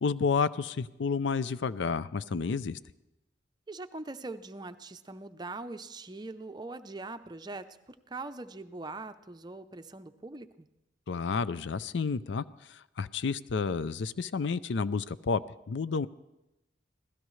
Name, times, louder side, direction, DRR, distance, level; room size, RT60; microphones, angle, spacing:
voice 1, 0.0-2.8 11.1-12.4 12.7-15.4 15.7-16.1, left 5 dB, 75° left, 16 dB, 0.5 m, -30 dB
voice 2, 3.7-10.7, right 2 dB, 25° right, 10 dB, 0.6 m, -42 dB
25.5 x 16.5 x 3.2 m, 0.95 s
head